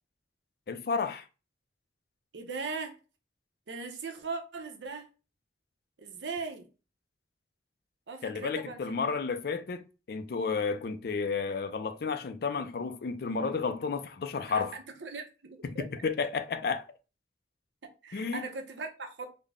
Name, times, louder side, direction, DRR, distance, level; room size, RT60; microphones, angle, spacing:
voice 1, 0.7-1.3 8.2-14.8 15.6-16.8 18.1-18.4, left 5 dB, 55° left, 0.4 m, -32 dB
voice 2, 2.3-3.0 3.7-5.1 6.0-6.7 8.1-9.0 14.5-15.9 18.0-19.3, right 4 dB, 80° right, 0.7 m, -39 dB
3.7 x 2.1 x 3.5 m
head